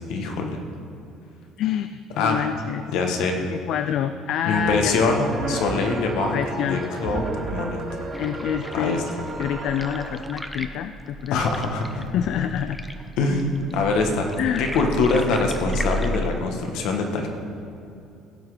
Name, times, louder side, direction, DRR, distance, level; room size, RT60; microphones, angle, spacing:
voice 1, 0.1-0.6 2.2-2.5 2.9-3.4 4.5-6.4 6.6-7.2 7.5-7.8 8.7-9.3 11.3-12.1 13.2-13.5 13.7-14.3 14.6-17.3, left 3 dB, 75° left, 3 dB, 1.5 m, -23 dB
voice 2, 2.2-2.9 3.5-4.9 6.3-6.8 8.2-9.0 9.4-11.4 12.1-12.8 14.4-14.7, left 10 dB, 60° left, 9 dB, 0.4 m, -26 dB
sound 1, 4.5-10.1, right 2 dB, 25° right, 2.0 m, -32 dB
sound 2, 8.1-16.3, equal, 5° left, 0.6 m, -34 dB
16.0 x 5.9 x 5.0 m, 2.7 s
cardioid pair, 135°, 0 cm